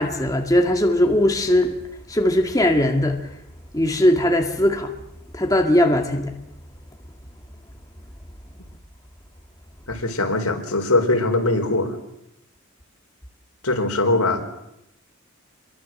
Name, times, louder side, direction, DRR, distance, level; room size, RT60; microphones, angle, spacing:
voice 1, 0.0-1.7 2.1-3.2 3.7-4.9 5.3-6.3, left 1 dB, 15° left, 1.9 m, -19 dB
voice 2, 9.9-12.0 13.6-14.5, left 2 dB, 85° left, 4.3 m, -21 dB
26.5 x 22.5 x 7.7 m
head